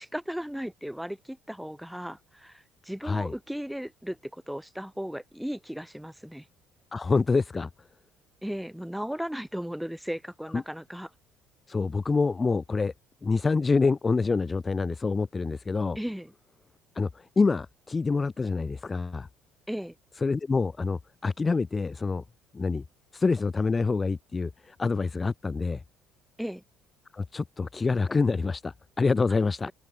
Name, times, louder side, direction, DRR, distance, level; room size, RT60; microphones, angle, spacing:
voice 1, 0.0-6.5 8.4-11.1 16.0-16.3 19.7-19.9 26.4-26.6, equal, ahead, 4.3 m, -36 dB
voice 2, 3.0-3.3 6.9-7.7 10.5-10.6 11.7-12.9 13.2-16.0 17.0-19.3 20.2-22.2 22.5-22.8 23.1-25.8 27.1-29.7, left 4 dB, 25° left, 0.6 m, -26 dB
figure-of-eight pair, 55°, 0 cm